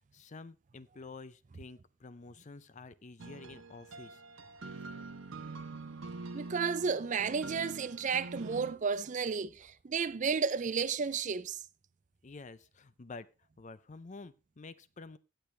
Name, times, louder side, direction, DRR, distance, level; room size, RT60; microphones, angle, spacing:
voice 1, 0.1-4.2 12.2-13.3 13.6-15.2, left 3 dB, 35° left, 0.5 m, -49 dB
sound 1, 3.2-8.8, right 3 dB, 65° right, 0.8 m, -45 dB
voice 2, 6.3-11.6, right 5 dB, 35° right, 0.4 m, -32 dB
16.5 x 6.8 x 3.2 m
head